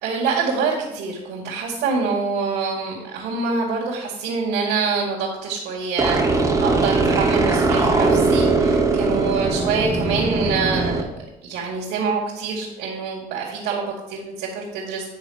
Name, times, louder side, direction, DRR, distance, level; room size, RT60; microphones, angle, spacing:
voice 1, 0.0-11.0 11.4-15.0, right 4 dB, 85° right, -5 dB, 2.2 m, -25 dB
sound 1, 6.0-11.0, right 3 dB, 15° right, 1.2 m, -20 dB
9.5 x 3.9 x 6.4 m, 0.94 s
cardioid pair, 110°, 17 cm